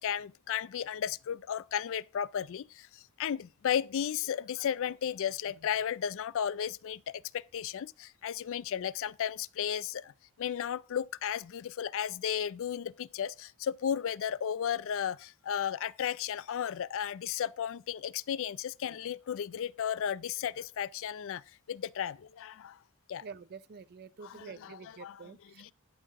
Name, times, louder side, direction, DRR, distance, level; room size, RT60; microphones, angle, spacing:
voice 1, 0.0-10.1 10.4-21.4 21.7-22.8 23.1-23.2 24.2-25.2 25.6-25.7, left 9 dB, 60° left, 0.4 m, -34 dB
voice 2, 23.2-25.7, right 5 dB, 45° right, 0.4 m, -48 dB
11.0 x 5.7 x 3.6 m
head